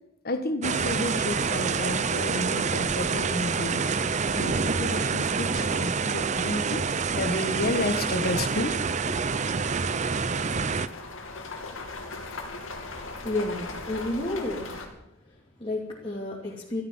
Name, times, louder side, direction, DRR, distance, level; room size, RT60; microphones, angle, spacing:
voice 1, 0.2-3.9 4.3-6.9 7.1-8.7 9.0-9.2, left 1 dB, 50° left, 9 dB, 1.5 m, -31 dB
sound 1, 0.6-10.9, right 5 dB, 35° right, 0.7 m, -27 dB
sound 2, 8.1-8.2 8.7-14.9, left 3 dB, 90° left, 2.7 m, -39 dB
voice 2, 13.1-14.9 15.2-16.8, left 2 dB, 25° left, -5 dB, 2.8 m, -32 dB
13.5 x 13.5 x 7.4 m, 0.86 s
head